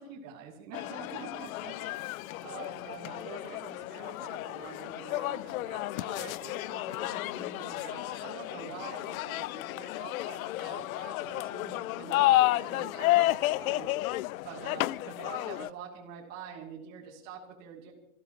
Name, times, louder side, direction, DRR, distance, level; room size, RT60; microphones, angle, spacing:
voice 1, 0.0-13.9 14.4-17.9, right 6 dB, 35° right, -4 dB, 2.9 m, -46 dB
sound 1, 0.7-15.7, left 16 dB, 75° left, 0.5 m, -31 dB
27.0 x 15.5 x 3.1 m, 0.86 s
supercardioid pair, 165°, 42 cm